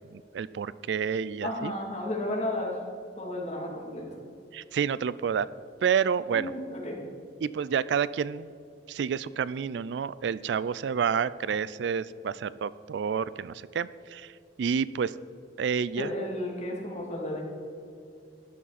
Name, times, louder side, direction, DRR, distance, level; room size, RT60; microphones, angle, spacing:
voice 1, 0.1-1.7 4.5-5.5 5.8-6.5 7.4-8.5 8.9-14.3 14.6-15.1 15.6-16.1, right 7 dB, 75° right, 18 dB, 0.3 m, -29 dB
voice 2, 1.4-2.7 3.2-4.1 6.3-7.0 16.0-17.4, left 1 dB, 40° left, -2 dB, 2.5 m, -33 dB
13.0 x 11.0 x 4.1 m, 2.5 s
head